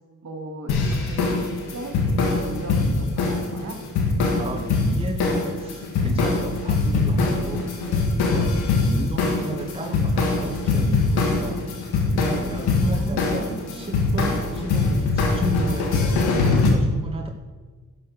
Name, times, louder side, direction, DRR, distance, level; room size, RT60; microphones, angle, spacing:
voice 1, 0.2-3.8 9.0-9.3 9.7-9.8 12.8-14.2, right 2 dB, 50° right, 3 dB, 2.6 m, -38 dB
sound 1, 0.7-16.7, left 3 dB, 90° left, 1.7 m, -22 dB
voice 2, 4.3-7.8 8.2-11.7 12.1-17.3, right 1 dB, 15° right, 2 dB, 1.4 m, -34 dB
11.0 x 6.5 x 6.6 m, 1.4 s
supercardioid pair, 45°, 37 cm